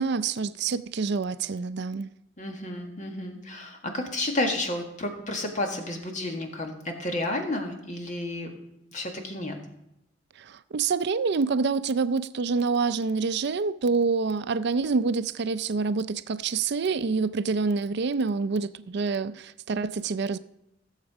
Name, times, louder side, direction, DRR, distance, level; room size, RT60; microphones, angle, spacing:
voice 1, 0.0-2.1 10.4-20.4, right 4 dB, 60° right, 0.5 m, -27 dB
voice 2, 2.4-8.5 8.9-9.6, left 1 dB, 40° left, 1.7 m, -31 dB
15.5 x 7.4 x 4.9 m
head